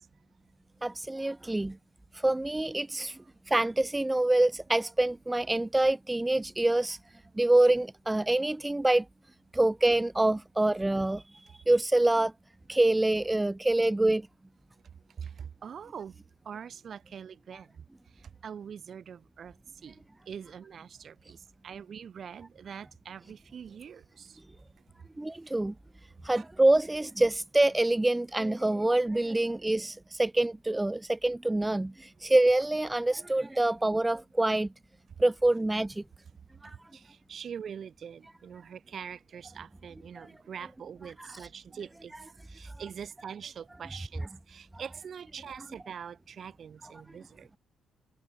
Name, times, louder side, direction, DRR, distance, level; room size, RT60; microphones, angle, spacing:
voice 1, 0.8-1.8 2.1-3.2 3.5-7.0 7.4-9.0 9.5-11.2 11.7-12.3 12.7-14.2 25.2-25.7 26.2-34.7 35.2-36.0 36.6-36.7 40.2-40.3 41.2-41.5 42.1-42.2 44.2-44.3 45.6-45.7 46.8-46.9, right 2 dB, 10° right, 1.6 m, -26 dB
voice 2, 15.2-16.1 16.5-17.7 18.4-19.5 19.8-20.0 20.3-21.4 21.6-24.3 36.9-42.1 42.5-47.6, right 7 dB, 55° right, 5.3 m, -43 dB
cardioid pair, 90°, 0 cm